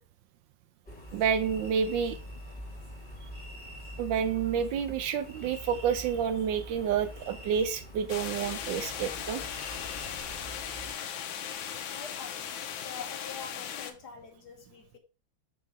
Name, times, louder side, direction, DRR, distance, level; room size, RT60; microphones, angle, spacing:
sound 1, 0.9-10.9, equal, 20° left, 1.9 m, -44 dB
voice 1, 1.1-2.2 4.0-9.4, right 7 dB, 75° right, 1.2 m, -29 dB
sound 2, 8.1-13.9, left 8 dB, 75° left, 1.4 m, -38 dB
voice 2, 11.9-12.6 12.8-15.0, left 6 dB, 60° left, 1.4 m, -45 dB
5.8 x 3.7 x 4.8 m
omnidirectional pair, 2.2 m